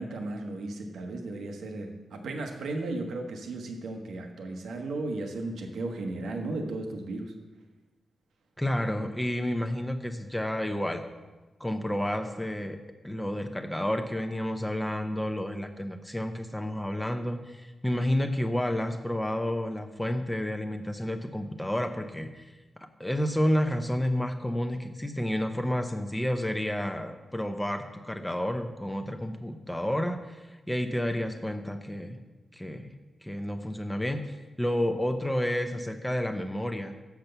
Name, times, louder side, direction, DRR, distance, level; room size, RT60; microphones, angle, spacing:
voice 1, 0.0-7.3, right 2 dB, 85° right, 3 dB, 1.1 m, -35 dB
voice 2, 8.6-11.0 11.6-12.8 13.0-22.5 22.8-32.2 32.5-32.9 33.2-34.2 34.6-36.9, left 1 dB, 10° left, 6 dB, 0.6 m, -30 dB
6.7 x 5.9 x 6.7 m, 1.2 s
cardioid pair, 100°, 0 cm